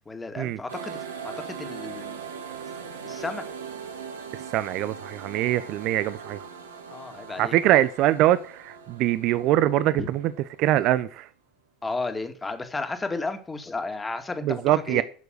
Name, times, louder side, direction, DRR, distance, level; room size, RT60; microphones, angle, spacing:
voice 1, 0.1-2.2 3.0-3.5 6.9-7.6 10.0-10.1 11.8-14.6 14.9-15.0, left 3 dB, 15° left, 2.1 m, -33 dB
sound 1, 0.7-11.0, right 6 dB, 80° right, 1.8 m, -40 dB
voice 2, 4.3-6.5 7.4-10.3 10.6-11.3 14.4-15.0, right 14 dB, 55° right, 0.6 m, -23 dB
10.5 x 6.9 x 6.5 m
hypercardioid pair, 75°, 0 cm